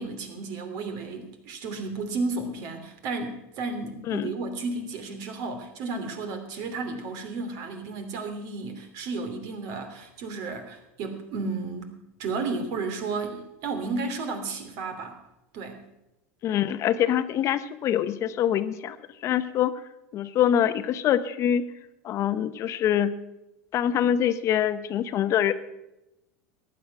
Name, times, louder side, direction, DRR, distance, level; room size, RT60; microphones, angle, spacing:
voice 1, 0.0-15.2 15.5-15.8, right 3 dB, 60° right, 6 dB, 2.8 m, -33 dB
voice 2, 16.4-19.0 19.2-19.7 20.1-21.6 22.0-23.1 23.7-25.5, left 10 dB, 45° left, 12 dB, 0.8 m, -24 dB
14.5 x 10.0 x 5.9 m, 0.90 s
hypercardioid pair, 100°, 7 cm